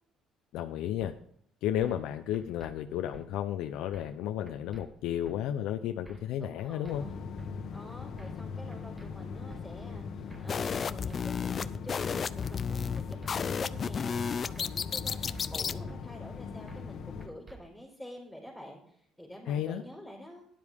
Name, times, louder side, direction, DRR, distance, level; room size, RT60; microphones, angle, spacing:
voice 1, 0.5-1.1 1.6-7.1 19.5-19.8, left 11 dB, 80° left, 6 dB, 0.6 m, -33 dB
sound 1, 1.0-1.1 1.8-2.1 2.3-2.7 3.1-3.2 3.9-4.2 4.5-4.8 5.2-5.4 6.0-6.3 6.6-7.0 7.4-7.5 8.2-8.4 8.7-9.1 9.5-9.6 10.3-10.6 10.8-11.2 11.6-11.7 12.4-12.7 13.0-13.3 13.7-13.9 14.5-14.8 15.1-15.5 15.9-16.0 16.7-16.9 17.2-17.6, right 3 dB, 20° right, 1.6 m, -50 dB
voice 2, 6.4-7.2 7.7-20.5, equal, ahead, -4 dB, 4.0 m, -48 dB
sound 2, 6.9-17.3, left 5 dB, 55° left, 1.2 m, -40 dB
sound 3, 10.5-15.8, left 6 dB, 40° left, 0.5 m, -33 dB
12.5 x 10.0 x 3.6 m, 0.65 s
cardioid pair, 110°, 0 cm